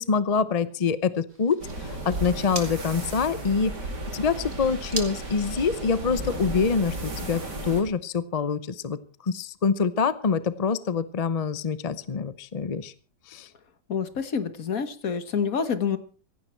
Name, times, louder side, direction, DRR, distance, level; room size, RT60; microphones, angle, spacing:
voice 1, 0.0-3.7 4.1-12.9 13.3-13.5, left 5 dB, 40° left, 15 dB, 0.5 m, -26 dB
sound 1, 1.3-6.4, right 3 dB, 40° right, 2.4 m, -41 dB
sound 2, 1.6-7.8, right 1 dB, 80° right, 4.2 m, -34 dB
voice 2, 13.9-16.0, left 6 dB, 55° left, 11 dB, 1.8 m, -27 dB
16.0 x 15.5 x 4.5 m, 0.39 s
omnidirectional pair, 1.8 m